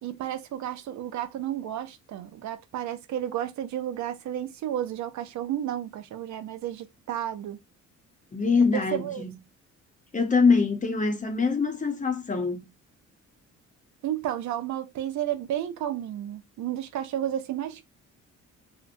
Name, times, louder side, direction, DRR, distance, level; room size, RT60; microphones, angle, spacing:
voice 1, 0.0-7.6 8.7-9.2 14.0-17.8, right 11 dB, 70° right, 0.5 m, -32 dB
voice 2, 8.3-9.3 10.1-12.6, left 4 dB, 25° left, 0.7 m, -24 dB
2.9 x 2.0 x 2.5 m
cardioid pair, 90°, 30 cm